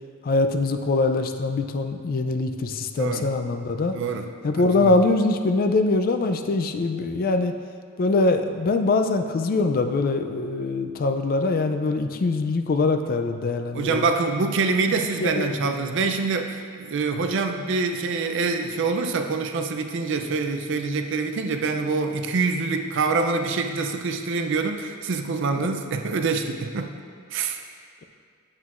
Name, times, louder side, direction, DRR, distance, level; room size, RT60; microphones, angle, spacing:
voice 1, 0.2-4.0 4.4-7.5 8.0-14.0 14.9-15.0 15.2-15.5 25.6-25.7, left 3 dB, 45° left, 7 dB, 0.4 m, -23 dB
voice 2, 3.0-3.3 3.9-4.3 4.6-5.0 13.7-26.9 27.3-27.6, right 4 dB, 60° right, 6 dB, 0.5 m, -25 dB
8.0 x 7.5 x 2.5 m, 2.2 s
head